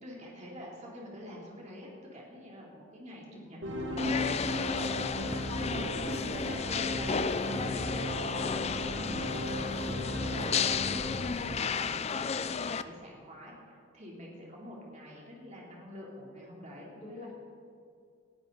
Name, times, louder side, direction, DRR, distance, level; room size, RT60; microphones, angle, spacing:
voice 1, 0.0-4.4 5.2-7.3 7.7-8.1 8.4-17.3, equal, 35° right, -3 dB, 3.1 m, -47 dB
sound 1, 3.6-12.1, left 1 dB, 65° right, 1.8 m, -36 dB
sound 2, 4.0-12.8, left 6 dB, 30° left, 0.4 m, -33 dB
voice 2, 6.0-6.6 7.4-7.9 11.2-11.7 16.9-17.3, equal, 65° left, -6 dB, 3.1 m, -45 dB
18.5 x 14.0 x 4.0 m, 2.3 s
head